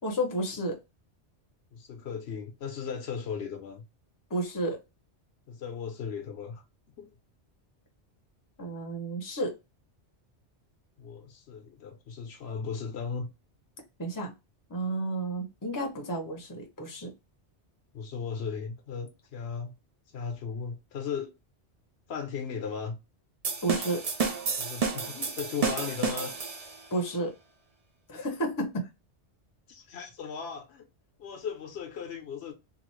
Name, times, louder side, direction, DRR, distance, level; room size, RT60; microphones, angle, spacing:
voice 1, 0.0-0.8 4.3-4.8 8.6-9.6 14.0-14.3 14.7-17.1 23.6-24.0 26.9-27.3 28.1-28.8, right 1 dB, 20° left, 0.6 m, -31 dB
voice 2, 1.7-3.8 5.5-6.6 7.0-7.1 11.0-13.3 17.9-19.7 20.1-21.3 22.1-23.0 24.6-26.3 29.7-30.9 31.2-32.5, left 6 dB, 70° left, 0.9 m, -37 dB
sound 1, 23.4-26.9, right 5 dB, 45° right, 0.5 m, -31 dB
2.9 x 2.4 x 3.0 m
omnidirectional pair, 1.1 m